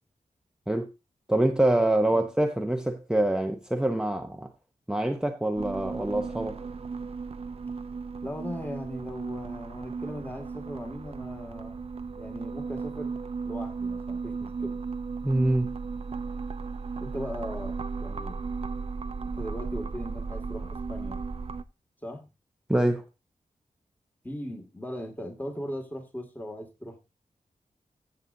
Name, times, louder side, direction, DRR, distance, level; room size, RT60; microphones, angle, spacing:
voice 1, 1.3-4.5 4.9-6.6 15.2-15.7 22.7-23.0, right 1 dB, 5° right, 0.9 m, -25 dB
sound 1, 5.6-21.6, right 4 dB, 45° right, 0.6 m, -35 dB
voice 2, 8.2-11.9 12.1-13.1 13.4-14.7 17.0-18.4 19.3-21.2 22.0-22.2 24.2-27.0, equal, 15° left, 2.2 m, -38 dB
14.5 x 7.8 x 2.7 m
wide cardioid pair, 100°, 14 cm